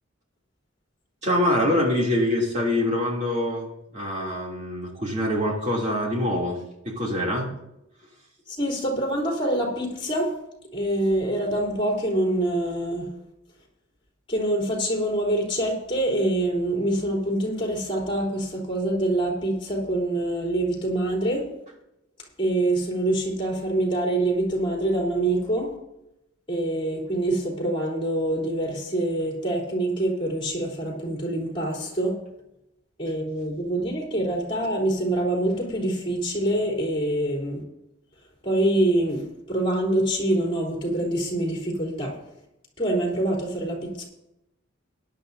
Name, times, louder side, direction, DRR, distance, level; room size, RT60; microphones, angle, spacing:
voice 1, 1.2-3.7 3.9-6.6 6.8-7.5, left 1 dB, 35° right, -3 dB, 3.1 m, -24 dB
voice 2, 8.5-10.3 10.7-13.1 14.3-21.5 22.4-25.8 26.5-32.1 33.0-37.6 38.4-42.2 42.8-44.0, right 1 dB, 25° left, -2 dB, 3.6 m, -25 dB
17.5 x 11.0 x 2.8 m, 0.86 s
head